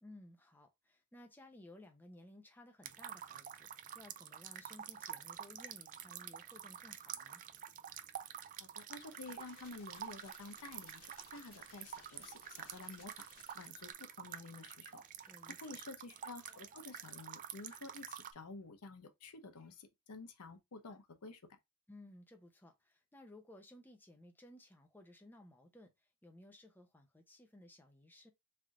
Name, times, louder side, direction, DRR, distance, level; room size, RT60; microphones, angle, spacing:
voice 1, 0.0-7.4 15.3-15.8 21.9-28.3, left 1 dB, 10° left, 0.6 m, -58 dB
sound 1, 2.8-18.3, right 9 dB, 35° right, 0.3 m, -49 dB
voice 2, 8.6-13.3 13.5-21.6, left 3 dB, 85° left, 0.7 m, -51 dB
sound 2, 9.0-13.9, left 4 dB, 70° left, 1.1 m, -63 dB
3.4 x 2.6 x 3.4 m
head